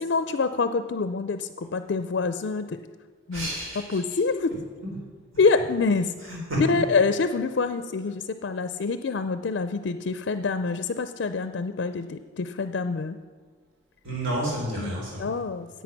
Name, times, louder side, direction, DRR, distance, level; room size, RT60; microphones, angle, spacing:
voice 1, 0.0-2.8 3.3-3.5 3.9-4.5 5.4-6.1 6.7-13.2 14.8-15.7, left 4 dB, 55° left, 10 dB, 0.4 m, -26 dB
voice 2, 3.3-4.0 4.8-4.9 6.3-6.6 14.0-15.3, right 1 dB, 85° right, -4 dB, 3.7 m, -30 dB
10.5 x 8.2 x 5.9 m, 1.5 s
head